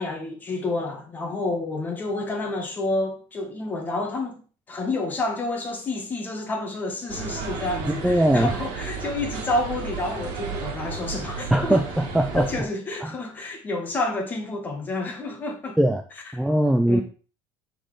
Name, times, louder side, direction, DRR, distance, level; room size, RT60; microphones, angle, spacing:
voice 1, 0.0-4.4 4.7-11.8 12.3-15.8 16.9-17.0, left 2 dB, 20° left, 1.4 m, -29 dB
sound 1, 7.1-12.6, right 5 dB, 45° right, 1.8 m, -33 dB
voice 2, 8.0-8.5 11.5-12.5 13.0-13.1 15.8-16.0 16.3-17.0, right 1 dB, ahead, 0.3 m, -20 dB
6.5 x 4.1 x 4.9 m
cardioid pair, 170°, 10 cm